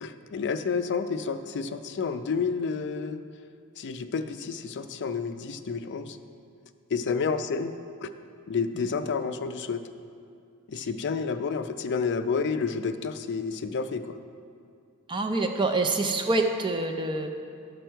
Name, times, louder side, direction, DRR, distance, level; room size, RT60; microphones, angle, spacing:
voice 1, 0.0-3.2 3.8-6.2 6.9-7.7 8.0-8.1 8.5-9.8 10.7-14.2, left 5 dB, 50° left, 9 dB, 0.4 m, -30 dB
voice 2, 15.1-17.3, right 2 dB, 20° right, 5 dB, 0.4 m, -26 dB
11.5 x 6.1 x 4.5 m, 2.4 s
head